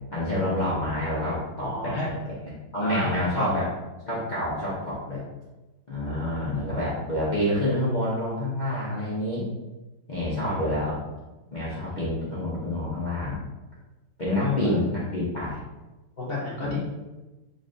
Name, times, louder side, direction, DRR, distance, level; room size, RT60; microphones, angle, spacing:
voice 1, 0.1-3.7 4.0-5.2 5.9-9.4 10.1-11.0 11.5-13.4 14.2-15.6 16.6-16.8, left 1 dB, 85° left, -9 dB, 0.4 m, -28 dB
voice 2, 1.6-2.1 2.8-3.6 6.1-6.7 11.9-12.1 14.4-14.7 16.2-16.8, left 2 dB, 40° left, -7 dB, 0.9 m, -31 dB
3.9 x 3.2 x 2.6 m, 1.1 s
omnidirectional pair, 2.1 m